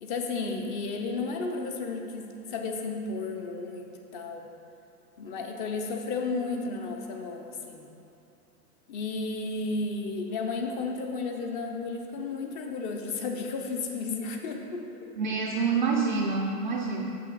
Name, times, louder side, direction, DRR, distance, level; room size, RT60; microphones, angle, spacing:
voice 1, 0.0-4.5 5.2-7.8 8.9-14.9, left 3 dB, 30° left, 3 dB, 0.7 m, -33 dB
voice 2, 15.2-17.0, right 4 dB, 35° right, -1 dB, 0.4 m, -27 dB
6.7 x 5.7 x 4.0 m, 2.8 s
hypercardioid pair, 110°, 49 cm